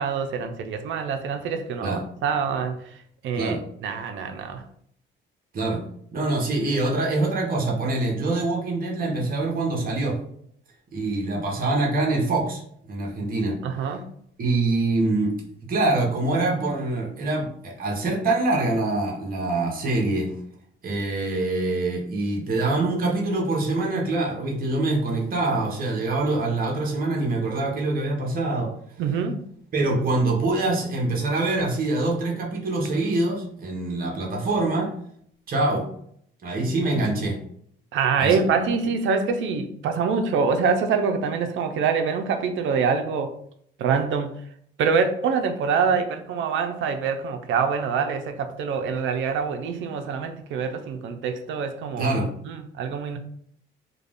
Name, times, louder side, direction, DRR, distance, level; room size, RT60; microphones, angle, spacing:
voice 1, 0.0-2.9 3.2-4.6 13.6-14.0 29.0-29.5 37.9-43.3 43.8-44.4 44.8-52.1 52.4-53.2, right 5 dB, 75° right, 7 dB, 0.5 m, -25 dB
voice 2, 5.5-10.2 10.9-12.6 12.9-13.6 14.4-15.4 15.7-20.3 20.8-28.7 29.7-34.9 35.5-35.9 36.4-37.4 38.2-38.4 52.0-52.3, right 2 dB, 45° right, -1 dB, 0.8 m, -24 dB
2.4 x 2.2 x 3.4 m, 0.66 s
cardioid pair, 90°, 20 cm